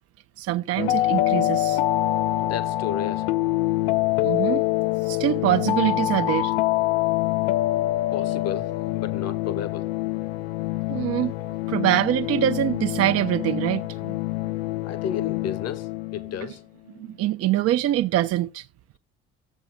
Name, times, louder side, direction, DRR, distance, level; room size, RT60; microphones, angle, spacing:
voice 1, 0.4-1.8 4.2-4.6 5.0-6.5 10.9-11.3 11.7-14.2 17.0-18.7, right 13 dB, 50° right, 0.6 m, -24 dB
sound 1, 0.8-16.5, left 16 dB, 80° left, 0.5 m, -25 dB
voice 2, 2.4-3.3 8.1-9.9 14.8-16.6, left 8 dB, 55° left, 1.2 m, -32 dB
15.5 x 7.6 x 2.2 m
hypercardioid pair, 55°, 31 cm